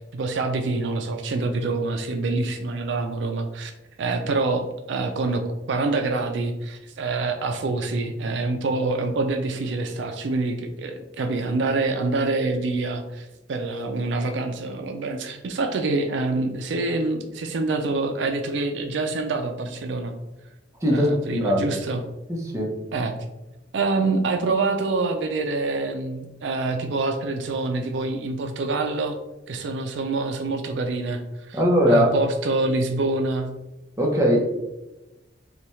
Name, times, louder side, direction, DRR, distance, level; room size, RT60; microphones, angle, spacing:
voice 1, 0.1-3.7 4.0-5.4 5.7-20.1 20.9-22.0 22.9-23.1 23.7-29.2 29.5-31.6 31.9-33.5, right 3 dB, 70° right, 6 dB, 0.4 m, -26 dB
voice 2, 20.8-21.8 22.3-22.7 31.5-32.1 34.0-34.4, equal, 15° right, -1 dB, 0.8 m, -20 dB
5.7 x 2.3 x 3.1 m, 1.0 s
head